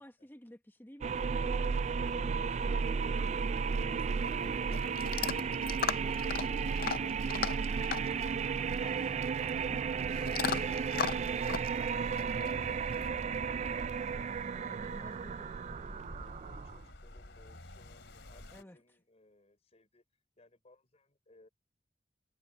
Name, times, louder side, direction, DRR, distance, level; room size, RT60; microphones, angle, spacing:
voice 1, 0.0-3.0 3.6-5.0 9.7-9.9 14.5-15.8 16.2-16.4 18.5-18.8, equal, 10° left, 1.2 m, -53 dB
sound 1, 1.0-16.9, right 5 dB, 40° right, 0.3 m, -34 dB
Chewing mastication / Dog, 4.0-13.1, left 7 dB, 55° left, 0.5 m, -39 dB
sound 2, 6.9-18.6, left 1 dB, 75° left, 3.1 m, -53 dB
voice 2, 16.4-21.5, left 2 dB, 35° left, 4.1 m, -64 dB
head